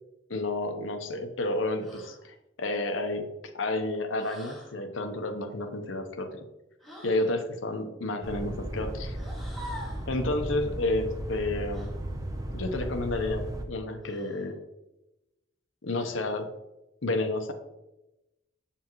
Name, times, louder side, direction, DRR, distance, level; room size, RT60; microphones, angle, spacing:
voice 1, 0.3-3.3 3.5-6.4 7.0-9.2 10.1-11.9 12.5-14.6 15.8-16.5 17.0-17.5, left 2 dB, 85° left, 6 dB, 0.9 m, -30 dB
sound 1, 1.8-2.2 4.2-4.7 6.8-7.3 9.1-10.1 11.7-11.9 14.0-14.5 15.9-16.4, equal, ahead, 2.1 m, -45 dB
sound 2, 8.2-13.6, right 1 dB, 20° right, 0.8 m, -35 dB
7.1 x 7.0 x 3.1 m, 0.95 s
head